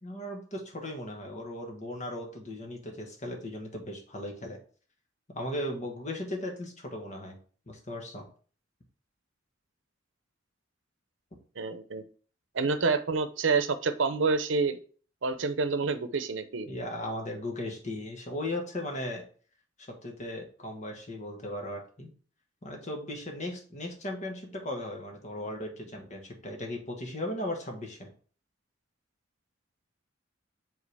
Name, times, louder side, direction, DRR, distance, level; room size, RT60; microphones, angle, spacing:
voice 1, 0.0-4.6 5.3-7.4 7.7-8.3 16.7-19.2 20.0-22.1 22.6-28.1, left 1 dB, 40° left, 2 dB, 1.4 m, -37 dB
voice 2, 11.6-12.0 12.5-14.8 15.2-16.7, right 4 dB, 90° right, 11 dB, 0.7 m, -28 dB
7.4 x 3.8 x 3.4 m, 0.42 s
head